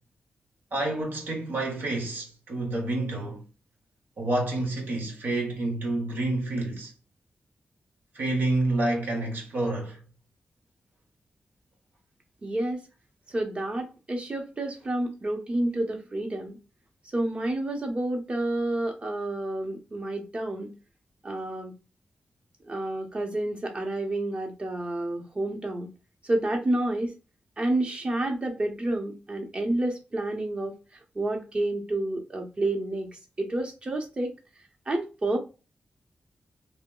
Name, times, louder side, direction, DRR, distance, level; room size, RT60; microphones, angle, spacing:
voice 1, 0.7-3.4 4.2-6.9 8.1-10.0, right 2 dB, 80° right, 1.2 m, -28 dB
voice 2, 12.4-12.8 13.3-16.6 17.1-20.7 21.2-21.7 22.6-25.9 26.2-27.1 27.6-30.7 31.1-33.1 33.4-34.3 34.9-35.4, right 1 dB, 35° right, 0.8 m, -29 dB
3.0 x 2.1 x 3.7 m
wide cardioid pair, 115°, 3 cm